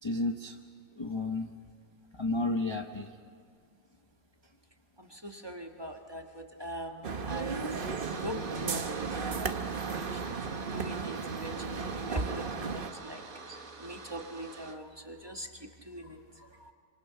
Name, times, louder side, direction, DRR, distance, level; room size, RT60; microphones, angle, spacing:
voice 1, 0.0-0.5 1.0-1.5 2.1-3.1, left 2 dB, 20° left, 4 dB, 0.8 m, -32 dB
voice 2, 5.0-7.8 8.2-9.3 9.8-10.2 10.7-13.2 13.8-16.5, right 1 dB, 15° right, 3 dB, 1.4 m, -41 dB
sound 1, 7.0-12.9, right 5 dB, 40° right, 1.0 m, -35 dB
sound 2, 7.3-14.7, right 4 dB, 55° right, 1.9 m, -46 dB
27.5 x 25.5 x 5.9 m, 2.1 s
omnidirectional pair, 1.8 m